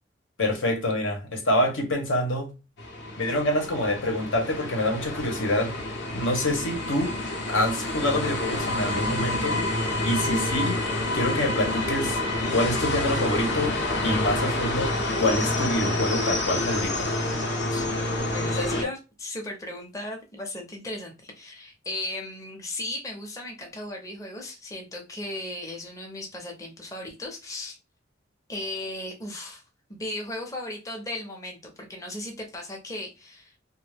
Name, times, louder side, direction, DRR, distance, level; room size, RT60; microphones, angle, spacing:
voice 1, 0.4-2.5 3.2-5.8 6.1-7.1 7.5-9.6 10.0-10.8 11.1-12.2 12.5-13.7 14.0-17.1 18.6-18.8, left 1 dB, 90° left, 0.9 m, -26 dB
sound 1, 2.8-18.8, left 2 dB, 65° left, 0.6 m, -28 dB
voice 2, 18.3-27.8 28.5-29.6 29.9-33.6, left 1 dB, 15° left, 0.5 m, -36 dB
2.4 x 2.0 x 3.3 m
head